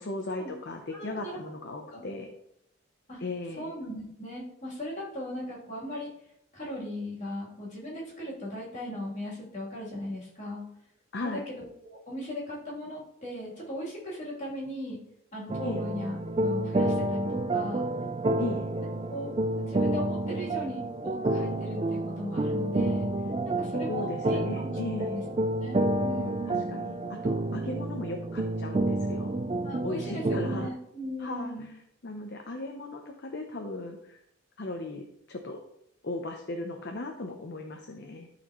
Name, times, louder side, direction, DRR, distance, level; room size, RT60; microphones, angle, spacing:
voice 1, 0.0-2.3 3.2-3.7 11.1-11.4 15.6-15.8 18.4-18.7 23.9-25.2 26.5-27.0 27.2-29.3 29.8-30.7 31.2-31.5 32.0-34.2 34.6-35.0 35.3-35.6 36.0-38.3, left 2 dB, 50° left, 3 dB, 0.7 m, -37 dB
voice 2, 0.9-1.4 1.9-2.0 3.1-3.2 3.6-6.1 6.5-10.6 11.2-15.0 15.3-17.9 19.1-19.3 19.6-23.1 23.5-25.2 25.6-26.8 29.6-31.7, equal, 35° left, -6 dB, 3.0 m, -38 dB
sound 1, 15.5-30.7, right 1 dB, 25° right, 0.3 m, -29 dB
12.0 x 4.3 x 3.0 m, 0.77 s
head